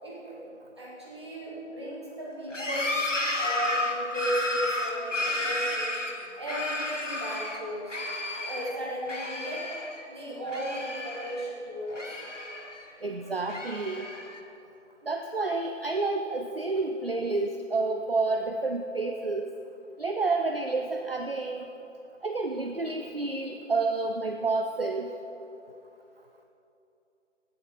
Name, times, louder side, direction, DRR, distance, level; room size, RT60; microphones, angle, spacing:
voice 1, 0.0-0.4 0.8-3.0 3.3-6.0 6.3-8.0 8.4-9.7 10.1-12.2, right 1 dB, 20° right, -6 dB, 1.8 m, -35 dB
sound 1, 2.5-7.6 7.9-8.7 9.1-10.0 10.3-11.5 11.9-12.9 13.4-14.4, left 2 dB, 75° left, 1.7 m, -32 dB
voice 2, 13.0-14.1 15.1-19.5 20.0-21.7 22.2-25.1, right 3 dB, 50° right, 4 dB, 0.6 m, -29 dB
16.0 x 6.9 x 5.5 m, 2.8 s
figure-of-eight pair, 165°, 37 cm